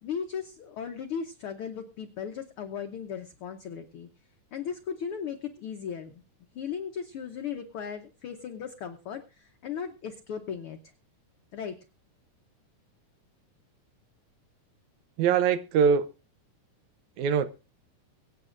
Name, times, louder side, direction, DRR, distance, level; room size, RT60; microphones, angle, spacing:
voice 1, 0.0-4.1 4.5-6.1 6.5-10.8 11.5-11.7, left 7 dB, 90° left, 1.2 m, -36 dB
voice 2, 15.2-16.1 17.2-17.5, right 7 dB, 75° right, 1.9 m, -22 dB
23.5 x 8.7 x 2.5 m
omnidirectional pair, 3.7 m